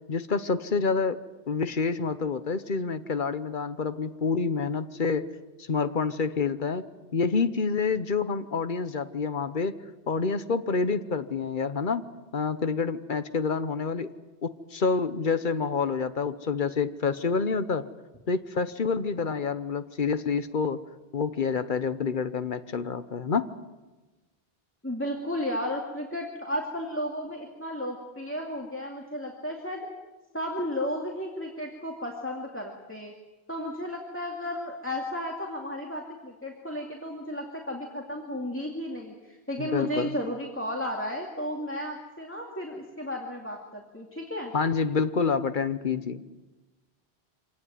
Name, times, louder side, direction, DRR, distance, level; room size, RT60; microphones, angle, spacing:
voice 1, 0.1-1.2 1.5-5.3 5.6-6.8 7.1-9.8 10.1-12.1 12.3-14.1 14.4-17.8 18.3-20.8 21.1-23.5 39.6-40.2 44.5-46.2, left 5 dB, 55° left, 12 dB, 1.1 m, -28 dB
voice 2, 24.8-29.9 30.3-33.1 33.5-44.5, left 1 dB, 10° left, 0 dB, 2.3 m, -33 dB
25.0 x 18.0 x 9.4 m, 1.2 s
omnidirectional pair, 1.0 m